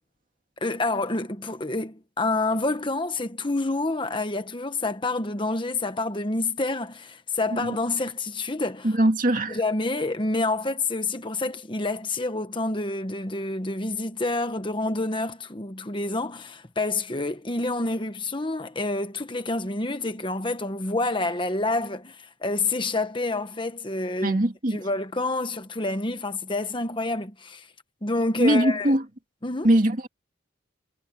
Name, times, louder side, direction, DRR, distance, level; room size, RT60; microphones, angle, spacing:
voice 1, 0.6-8.9 9.5-24.4 24.7-27.7 28.0-29.0 29.4-29.7, left 2 dB, 25° left, 1.3 m, -28 dB
voice 2, 8.8-9.6 24.2-24.8 28.4-29.0 29.6-30.1, right 1 dB, 40° right, 2.2 m, -21 dB
head